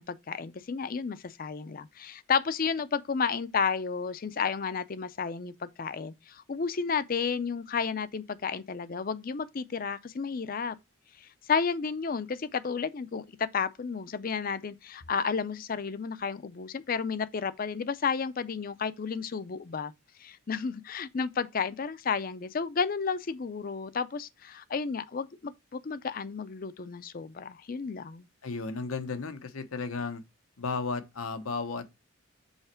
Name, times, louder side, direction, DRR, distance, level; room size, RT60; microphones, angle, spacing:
voice 1, 0.0-10.8 11.2-19.9 20.2-28.3, left 5 dB, 45° left, 0.4 m, -32 dB
voice 2, 28.4-30.2 30.6-31.9, left 4 dB, 90° left, 0.9 m, -34 dB
5.6 x 4.2 x 4.3 m
head